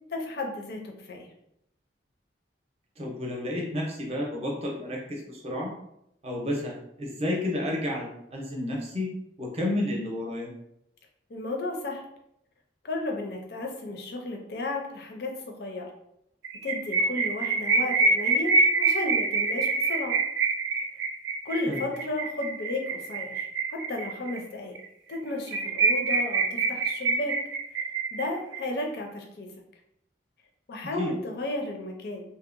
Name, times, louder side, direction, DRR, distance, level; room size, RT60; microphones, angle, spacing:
voice 1, 0.1-1.3 11.3-12.0 12.8-15.9 16.6-20.2 21.4-24.8 25.1-27.4 28.1-29.5 30.7-32.2, left 2 dB, 60° left, 2 dB, 0.5 m, -33 dB
voice 2, 3.0-5.7 6.2-9.1 9.4-10.5 21.7-21.8 31.0-31.1, left 1 dB, 35° right, -2 dB, 0.6 m, -31 dB
sound 1, 16.4-24.4 24.8-24.9 25.1-25.2 25.5-28.6, right 3 dB, 85° right, 0.4 m, -25 dB
2.7 x 2.1 x 2.5 m, 0.77 s
head